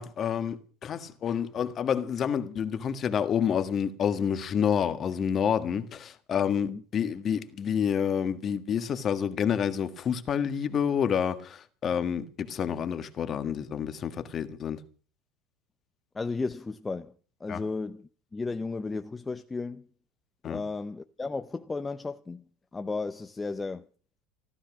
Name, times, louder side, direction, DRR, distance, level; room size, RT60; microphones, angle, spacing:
voice 1, 0.0-14.8 17.5-17.6 20.4-20.6, left 8 dB, 35° left, 1.6 m, -28 dB
voice 2, 16.1-17.1 17.4-19.9 20.5-22.4 22.7-23.9, left 3 dB, 15° left, 0.8 m, -34 dB
15.0 x 13.0 x 6.1 m
supercardioid pair, 125°, 0 cm